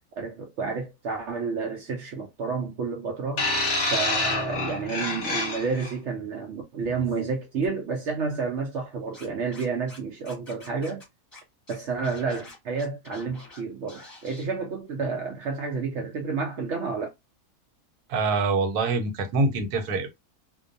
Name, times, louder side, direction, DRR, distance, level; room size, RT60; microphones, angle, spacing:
voice 1, 0.2-3.5 3.9-11.0 11.7-17.1, right 4 dB, 65° right, 0.7 m, -30 dB
sound 1, 3.4-5.9 6.8-7.0, left 2 dB, 50° left, 0.9 m, -27 dB
Scratching (performance technique), 9.1-10.0 10.2-11.0 11.3-11.4 11.7-13.6 13.9-14.4, left 2 dB, 15° left, 1.2 m, -47 dB
voice 2, 18.1-20.1, right 3 dB, 80° right, 1.2 m, -25 dB
2.5 x 2.2 x 2.5 m
omnidirectional pair, 1.6 m